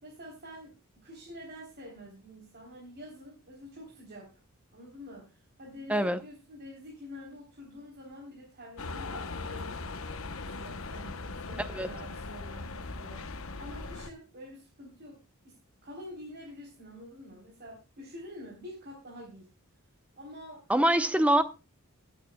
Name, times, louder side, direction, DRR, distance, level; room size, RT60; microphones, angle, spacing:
voice 1, 0.0-4.3 4.7-9.8 10.5-15.2 15.4-15.6 15.8-19.5 20.2-20.6, left 1 dB, 50° right, 3.9 m, -47 dB
voice 2, 5.9-6.2 11.7-11.9 20.7-21.4, right 1 dB, 5° right, 0.8 m, -24 dB
sound 1, 8.8-14.1, left 3 dB, 70° left, 1.0 m, -39 dB
21.5 x 9.1 x 2.3 m
head